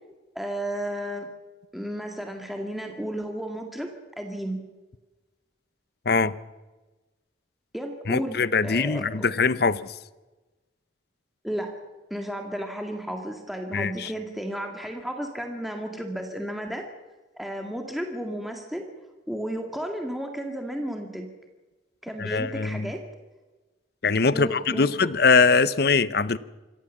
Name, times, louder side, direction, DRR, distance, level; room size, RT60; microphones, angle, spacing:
voice 1, 0.4-1.3 1.7-4.6 7.7-9.0 11.4-11.7 12.1-16.9 17.4-18.8 19.3-21.3 22.0-23.0 24.3-25.1, right 1 dB, ahead, 3 dB, 2.0 m, -33 dB
voice 2, 8.1-9.8 13.7-14.1 22.2-22.9 24.0-26.4, left 4 dB, 55° left, 17 dB, 0.8 m, -22 dB
26.5 x 14.5 x 7.3 m, 1.2 s
head